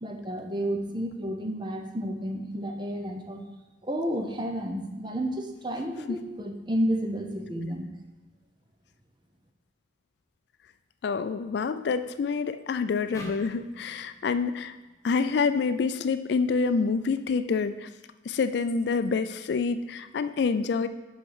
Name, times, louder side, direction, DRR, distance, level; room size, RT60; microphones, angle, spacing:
voice 1, 0.0-3.4 3.8-7.9, equal, 25° right, 4 dB, 0.7 m, -31 dB
voice 2, 11.0-14.7 15.0-17.9 18.3-20.9, left 5 dB, 60° left, 11 dB, 0.3 m, -27 dB
sound 1, 13.1-16.4, equal, 15° left, 0.9 m, -48 dB
5.6 x 5.4 x 5.6 m, 1.2 s
head